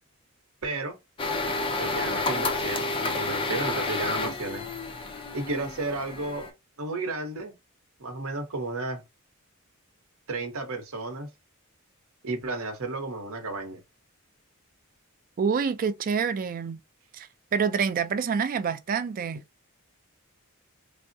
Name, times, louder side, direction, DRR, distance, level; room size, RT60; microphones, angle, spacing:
voice 1, 0.6-1.0 1.8-4.6 5.3-6.5 6.8-7.5 8.0-9.0 10.3-11.3 12.2-13.8, right 2 dB, 70° right, 0.8 m, -33 dB
sound 1, 1.2-6.5, left 3 dB, 25° left, 0.4 m, -30 dB
voice 2, 15.4-16.8 17.1-19.4, right 6 dB, 40° right, 0.3 m, -27 dB
3.5 x 2.0 x 2.6 m
head